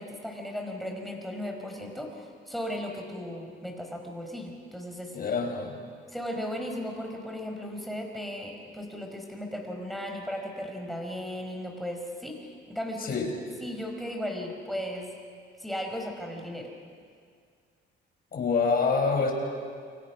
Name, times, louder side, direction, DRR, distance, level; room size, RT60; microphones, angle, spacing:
voice 1, 0.0-5.2 6.1-13.3 13.6-15.1 15.6-16.7, equal, ahead, 1 dB, 5.4 m, -36 dB
voice 2, 5.1-5.8 13.0-13.3 18.3-19.3, left 4 dB, 50° left, 1 dB, 5.8 m, -26 dB
29.0 x 24.5 x 6.2 m, 2.1 s
cardioid pair, 90°, 20 cm